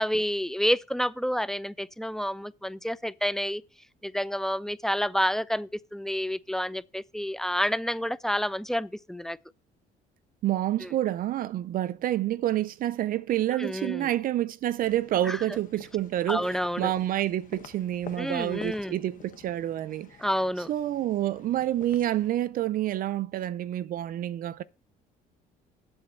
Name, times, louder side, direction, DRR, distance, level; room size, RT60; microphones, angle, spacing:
voice 1, 0.0-3.6 4.0-9.4 10.8-10.9 13.6-14.1 15.2-15.4 16.3-16.9 18.2-18.9 20.2-20.7, equal, 5° left, 0.3 m, -29 dB
voice 2, 10.4-20.2 20.7-24.6, right 13 dB, 55° right, 0.5 m, -28 dB
sound 1, 14.8-22.3, left 8 dB, 50° left, 1.1 m, -49 dB
7.8 x 5.1 x 6.8 m
cardioid pair, 110°, 17 cm